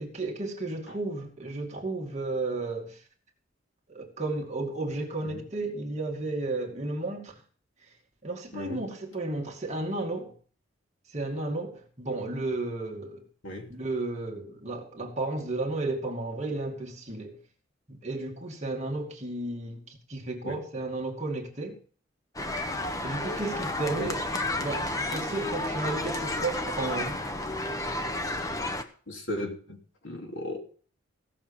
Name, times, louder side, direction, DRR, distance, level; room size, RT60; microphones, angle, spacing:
voice 1, 0.0-3.0 3.9-7.4 8.2-10.3 11.1-13.2 13.7-17.4 17.9-21.7 23.0-24.2 24.6-27.2, right 2 dB, 35° right, 2.4 m, -33 dB
voice 2, 8.5-8.9 13.4-13.7 20.4-20.6 24.0-24.2 29.1-30.6, left 1 dB, 65° left, 3.0 m, -36 dB
sound 1, 22.4-28.8, left 1 dB, 15° left, 1.0 m, -31 dB
16.5 x 6.7 x 7.2 m
head